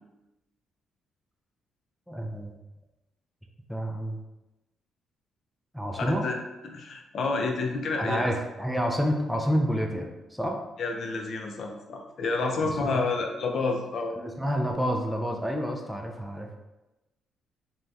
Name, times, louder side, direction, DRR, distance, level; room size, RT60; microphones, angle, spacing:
voice 1, 2.1-2.5 3.7-4.2 5.7-6.2 8.0-10.6 12.8-13.0 14.2-16.6, equal, ahead, 1 dB, 0.4 m, -29 dB
voice 2, 5.9-6.3 6.6-8.3 10.8-14.1, left 3 dB, 60° left, 2 dB, 0.4 m, -29 dB
3.3 x 2.1 x 2.6 m, 1.0 s
cardioid pair, 90°, 0 cm